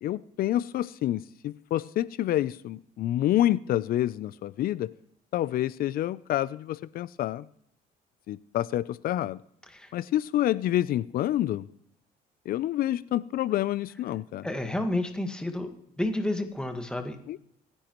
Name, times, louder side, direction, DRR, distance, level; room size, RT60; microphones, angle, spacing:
voice 1, 0.0-4.9 5.3-7.5 8.3-9.4 9.9-11.7 12.5-14.5 17.3-17.4, left 13 dB, 60° left, 19 dB, 0.5 m, -28 dB
voice 2, 14.4-15.7 16.0-17.4, left 1 dB, 5° left, 5 dB, 1.7 m, -30 dB
25.0 x 10.0 x 3.1 m, 0.71 s
cardioid pair, 110°, 17 cm